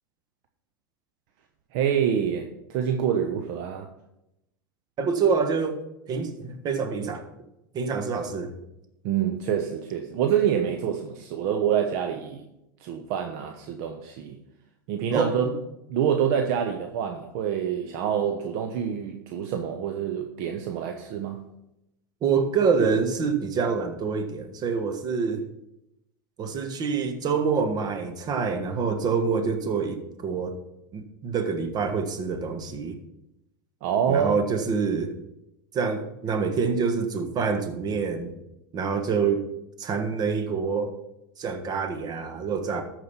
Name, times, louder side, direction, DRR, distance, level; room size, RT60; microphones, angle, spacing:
voice 1, 1.7-3.9 9.0-12.5 12.8-14.4 14.9-15.5 15.9-21.4 33.8-34.4, right 8 dB, 55° right, 1.0 m, -26 dB
voice 2, 5.0-5.8 6.1-7.3 7.7-8.5 15.1-15.4 22.2-25.4 26.4-30.5 30.9-33.0 34.1-35.1 35.7-38.3 38.7-39.4 39.8-40.9 41.4-42.8, right 5 dB, 40° right, 1.5 m, -26 dB
13.5 x 5.0 x 5.7 m
hypercardioid pair, 90°, 11 cm